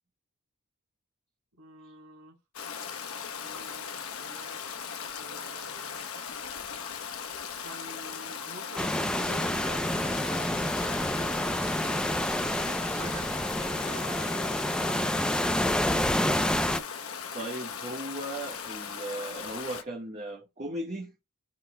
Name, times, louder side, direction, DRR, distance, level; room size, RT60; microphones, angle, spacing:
voice 1, 1.5-2.4 3.4-4.6 5.1-6.1 7.6-12.2 12.9-15.2, right 2 dB, 85° right, 3.4 m, -48 dB
Stream, 2.5-19.8, left 7 dB, 70° left, 1.0 m, -38 dB
sound 1, 8.8-16.8, left 1 dB, 5° left, 0.5 m, -28 dB
voice 2, 17.3-21.1, right 1 dB, 35° right, 1.4 m, -37 dB
15.0 x 5.5 x 2.2 m
head